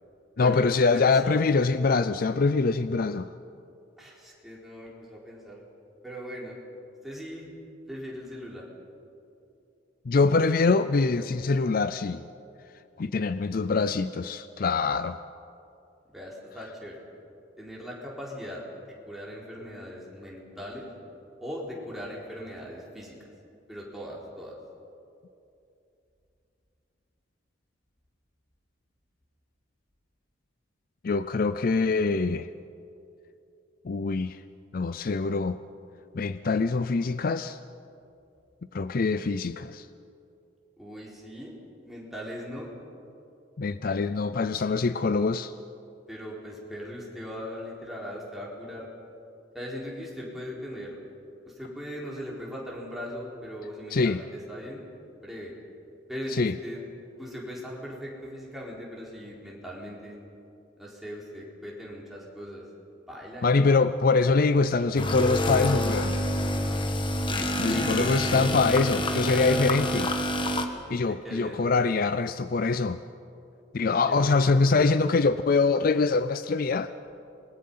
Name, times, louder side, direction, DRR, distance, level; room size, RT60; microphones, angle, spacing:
voice 1, 0.4-3.3 10.1-12.2 13.0-15.2 31.0-32.5 33.8-34.4 34.7-35.6 36.1-37.6 38.7-39.9 43.6-45.5 53.9-54.2 56.3-56.5 63.4-66.2 67.6-70.1 70.9-73.0 73.7-76.9, left 4 dB, 50° left, 13 dB, 0.4 m, -24 dB
voice 2, 0.9-1.3 4.0-5.6 6.0-6.6 7.0-7.5 7.9-8.6 16.1-17.0 17.6-18.6 19.0-20.9 21.4-23.1 23.7-24.6 40.8-41.5 41.8-42.7 46.1-48.9 49.5-51.0 51.5-54.8 55.2-55.5 56.1-56.8 57.2-60.2 60.8-62.6 63.1-63.6 67.4-68.4 68.9-69.9 70.9-71.6 73.9-74.9, equal, ahead, -5 dB, 4.3 m, -39 dB
sound 1, 65.0-70.7, equal, 25° left, 1.4 m, -27 dB
27.5 x 21.0 x 5.7 m, 2.7 s
head